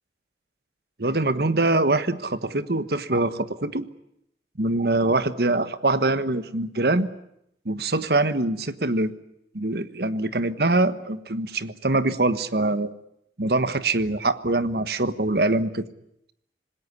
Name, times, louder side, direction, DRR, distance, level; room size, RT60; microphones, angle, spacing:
voice 1, 1.0-3.9 4.6-7.1 7.6-9.1 9.5-12.9 13.4-15.8, right 2 dB, 65° right, 13 dB, 1.3 m, -23 dB
26.5 x 20.0 x 9.7 m, 0.77 s
head